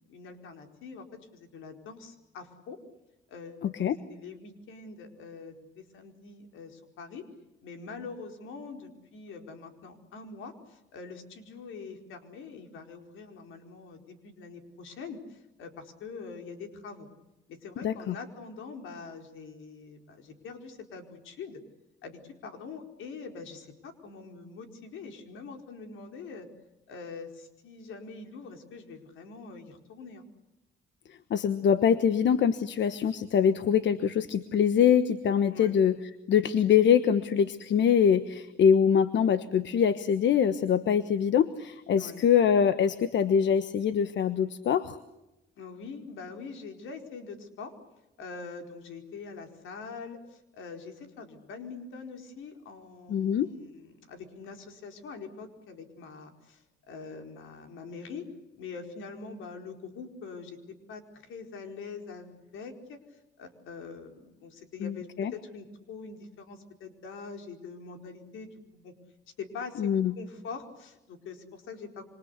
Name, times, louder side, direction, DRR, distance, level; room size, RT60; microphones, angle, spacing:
voice 1, 0.1-2.8 3.3-7.3 7.6-17.1 17.5-21.6 22.0-26.5 26.9-30.2 35.5-35.8 41.9-42.2 45.6-47.7 48.2-58.3 58.6-63.0 63.4-68.9 69.4-72.0, left 4 dB, 80° left, 5 dB, 4.6 m, -44 dB
voice 2, 3.6-4.0 17.8-18.1 31.3-45.0 53.1-53.5 64.8-65.3 69.8-70.1, left 8 dB, 65° left, 12 dB, 1.3 m, -24 dB
27.0 x 26.5 x 8.2 m, 0.96 s
cardioid pair, 90°, 20 cm